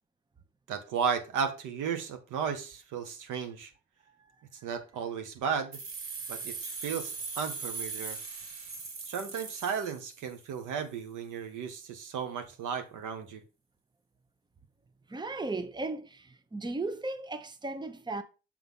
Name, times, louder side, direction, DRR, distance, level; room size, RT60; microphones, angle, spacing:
voice 1, 0.7-3.7 4.6-5.8 6.3-8.2 9.1-13.4, right 6 dB, 85° right, 1.4 m, -34 dB
sound 1, 5.7-10.5, right 4 dB, 50° right, 3.2 m, -40 dB
voice 2, 15.1-18.2, right 2 dB, 15° right, 0.8 m, -36 dB
6.8 x 4.0 x 5.6 m
cardioid pair, 90°, 30 cm